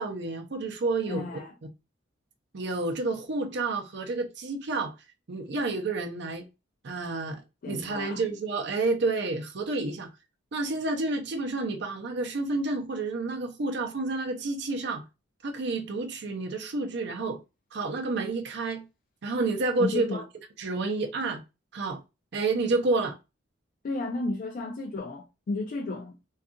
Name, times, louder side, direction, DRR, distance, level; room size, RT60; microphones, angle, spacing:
voice 1, 0.0-1.3 2.5-4.9 5.3-6.5 6.8-7.4 7.7-10.1 10.5-15.0 15.4-17.4 17.7-18.9 19.2-20.2 20.6-21.4 21.7-22.0 22.3-23.2, right 3 dB, 60° right, 0.5 m, -29 dB
voice 2, 1.1-1.5 7.6-8.2 19.8-20.2 23.8-26.2, left 2 dB, 45° left, 0.3 m, -33 dB
2.6 x 2.3 x 2.4 m
head